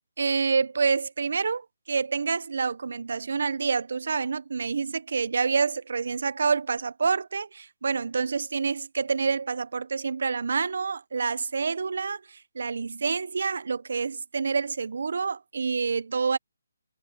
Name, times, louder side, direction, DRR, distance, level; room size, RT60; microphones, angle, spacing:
voice 1, 0.2-16.4, right 5 dB, 65° right, 1.3 m, -27 dB
figure-of-eight pair, 150°, 0 cm